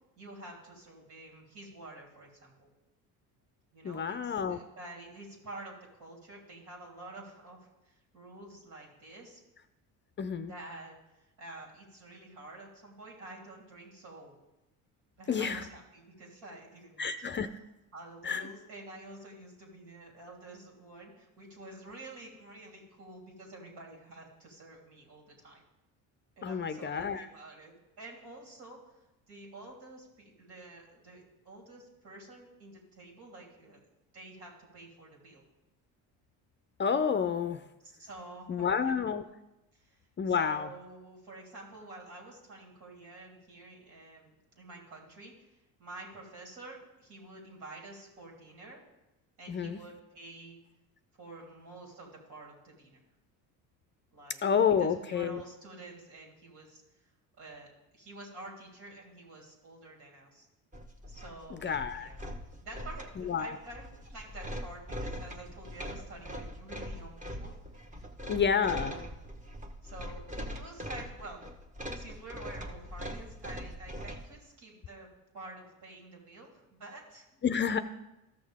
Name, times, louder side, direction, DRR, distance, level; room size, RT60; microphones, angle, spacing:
voice 1, 0.2-2.7 3.7-9.4 10.4-14.3 15.2-17.5 17.9-25.6 26.4-28.8 29.3-33.8 34.1-35.4 37.8-39.0 39.7-40.0 40.3-45.5 45.8-48.8 49.4-50.6 51.2-53.0 54.1-56.8 57.4-60.5 61.1-62.2 62.6-67.8 68.2-69.1 69.8-71.4 71.9-75.1 75.3-77.4, right 2 dB, 75° right, -2 dB, 3.4 m, -49 dB
voice 2, 3.8-4.6 10.2-10.5 15.3-15.6 17.0-17.5 18.2-18.4 26.4-27.3 36.8-37.6 38.5-39.2 40.2-40.7 49.5-49.8 54.4-55.4 61.5-62.1 63.2-63.6 68.3-68.9 77.4-77.8, left 7 dB, 30° left, 11 dB, 0.4 m, -29 dB
sound 1, 60.7-74.3, equal, 20° right, 1.1 m, -42 dB
14.0 x 6.4 x 3.5 m, 0.95 s
supercardioid pair, 90°, 41 cm